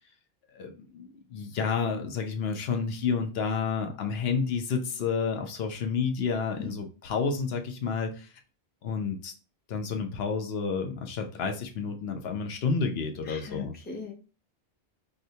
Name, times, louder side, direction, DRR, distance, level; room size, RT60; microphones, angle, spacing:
voice 1, 0.5-8.3 8.8-9.3 9.7-13.7, left 5 dB, 70° left, 4 dB, 0.8 m, -30 dB
voice 2, 13.3-14.1, left 6 dB, 15° left, 0 dB, 0.5 m, -38 dB
4.7 x 2.1 x 2.7 m, 0.35 s
omnidirectional pair, 1.1 m